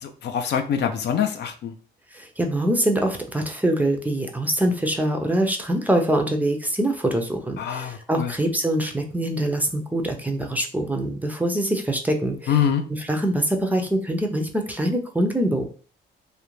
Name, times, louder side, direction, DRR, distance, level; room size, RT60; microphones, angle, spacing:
voice 1, 0.0-1.7 7.6-8.3 12.5-12.8, left 8 dB, 60° left, 7 dB, 0.4 m, -24 dB
voice 2, 2.1-12.5 13.1-15.7, right 1 dB, 10° right, 3 dB, 0.4 m, -24 dB
2.4 x 2.1 x 3.0 m, 0.40 s
cardioid pair, 90°, 20 cm